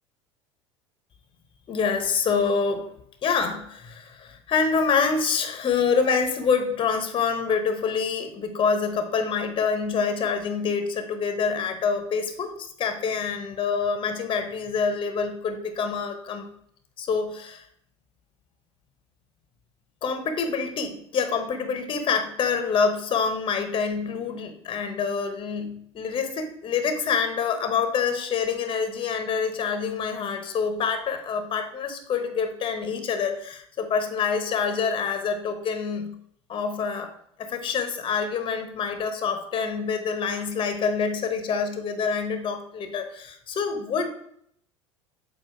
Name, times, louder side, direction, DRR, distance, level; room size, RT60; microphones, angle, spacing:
voice 1, 1.7-2.9 3.2-16.4 17.0-17.6 20.0-36.1 36.5-37.1 37.4-44.1, left 5 dB, 35° left, 7 dB, 1.0 m, -26 dB
7.7 x 2.6 x 4.9 m, 0.69 s
figure-of-eight pair, 70°, 15 cm